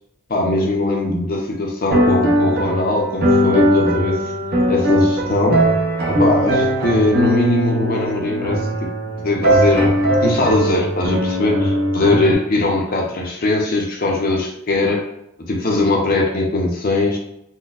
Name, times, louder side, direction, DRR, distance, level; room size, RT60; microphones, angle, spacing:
voice 1, 0.3-4.3 4.7-5.7 6.1-8.9 9.2-9.9 10.2-15.1 15.5-17.2, left 2 dB, 45° left, 0 dB, 0.6 m, -20 dB
sound 1, 1.9-12.3, equal, 50° right, 0.7 m, -19 dB
3.9 x 2.1 x 2.4 m, 0.78 s
head